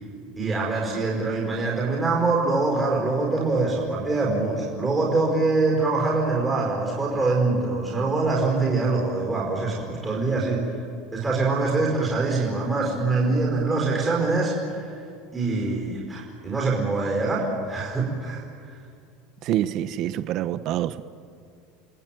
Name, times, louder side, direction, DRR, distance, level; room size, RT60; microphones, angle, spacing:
voice 1, 0.4-10.7 11.1-14.9 15.3-18.4, right 3 dB, 10° right, -3 dB, 4.9 m, -24 dB
voice 2, 19.4-21.0, right 12 dB, 40° right, 13 dB, 0.9 m, -26 dB
29.0 x 19.5 x 9.2 m, 2.3 s
cardioid pair, 170°, 0 cm